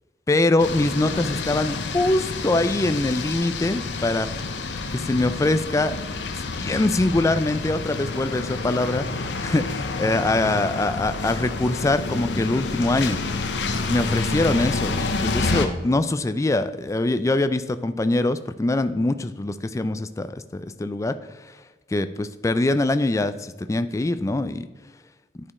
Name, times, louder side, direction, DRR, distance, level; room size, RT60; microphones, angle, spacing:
voice 1, 0.3-4.3 4.9-6.0 6.6-13.2 13.9-21.2 21.9-24.7, left 2 dB, 20° left, 11 dB, 0.3 m, -23 dB
sound 1, 0.6-15.7, left 3 dB, 85° left, 0.7 m, -28 dB
9.6 x 5.0 x 4.2 m, 1.2 s
head